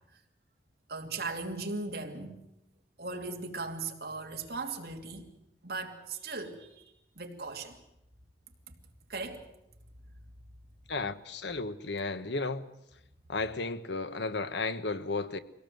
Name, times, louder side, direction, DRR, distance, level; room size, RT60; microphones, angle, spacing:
voice 1, 0.9-2.4 3.0-5.3 5.6-7.8 9.1-9.4, right 3 dB, 60° right, 2.8 m, -38 dB
voice 2, 10.9-12.7 13.3-15.4, left 3 dB, 85° left, 1.2 m, -33 dB
24.0 x 17.5 x 7.9 m
head